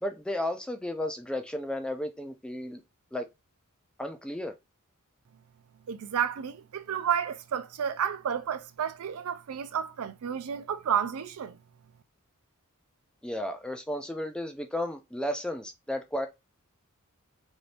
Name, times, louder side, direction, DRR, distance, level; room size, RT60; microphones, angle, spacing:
voice 1, 0.0-2.8 3.1-3.3 4.0-4.5 13.2-16.3, left 1 dB, 5° left, 0.3 m, -33 dB
voice 2, 5.9-11.6, right 8 dB, 70° right, 0.4 m, -31 dB
2.7 x 2.6 x 3.2 m
head